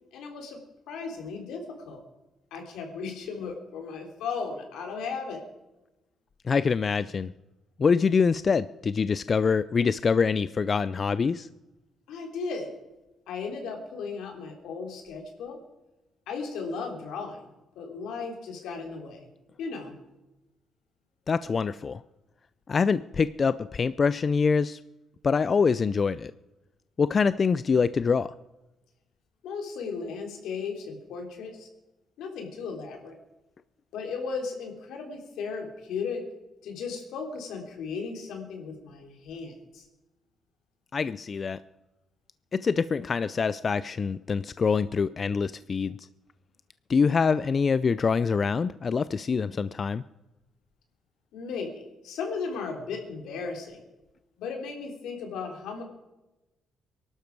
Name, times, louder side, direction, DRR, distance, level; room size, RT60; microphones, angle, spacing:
voice 1, 0.1-0.6 0.9-2.0 2.5-5.4 12.1-12.7 13.3-15.6 16.3-17.5 17.7-19.3 19.6-19.9 29.4-31.7 32.2-33.2 33.9-36.2 36.6-39.8 51.3-53.8 54.4-55.8, left 5 dB, 85° left, 3 dB, 3.3 m, -36 dB
voice 2, 6.4-7.3 7.8-11.5 21.3-22.0 22.7-24.8 25.2-26.3 27.0-28.3 40.9-41.6 42.5-46.1 46.9-50.0, left 5 dB, 40° left, 15 dB, 0.4 m, -25 dB
22.0 x 12.0 x 4.7 m, 1.0 s
cardioid pair, 90°, 0 cm